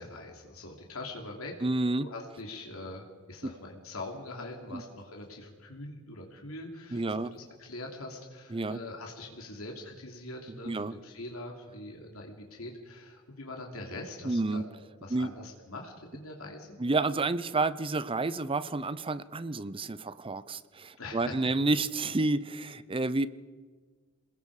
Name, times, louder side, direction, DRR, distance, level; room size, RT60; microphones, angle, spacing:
voice 1, 0.0-1.6 2.0-14.6 15.0-16.7 21.0-21.5, left 2 dB, 85° left, 1 dB, 3.0 m, -43 dB
voice 2, 1.6-2.1 4.7-4.8 6.9-7.3 8.5-8.8 10.6-10.9 14.2-14.6 15.1-15.3 16.8-23.3, right 2 dB, 25° right, 15 dB, 0.6 m, -30 dB
28.5 x 20.5 x 4.9 m, 1.5 s
head